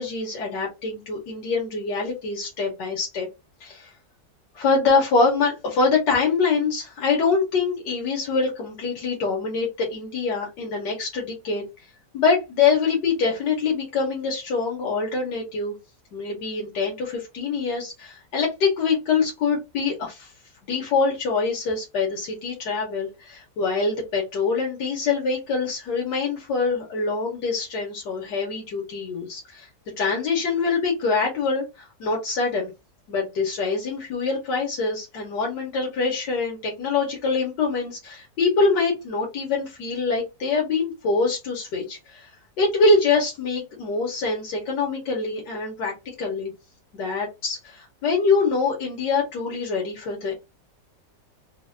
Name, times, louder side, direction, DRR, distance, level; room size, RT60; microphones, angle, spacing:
voice 1, 0.0-3.3 3.6-3.9 4.5-11.6 12.1-15.7 16.1-20.3 20.6-29.7 30.0-32.7 33.1-42.3 42.6-45.9 46.2-46.5 46.9-50.3, left 4 dB, 85° left, -2 dB, 1.6 m, -24 dB
4.4 x 2.1 x 2.5 m, 0.24 s
omnidirectional pair, 1.8 m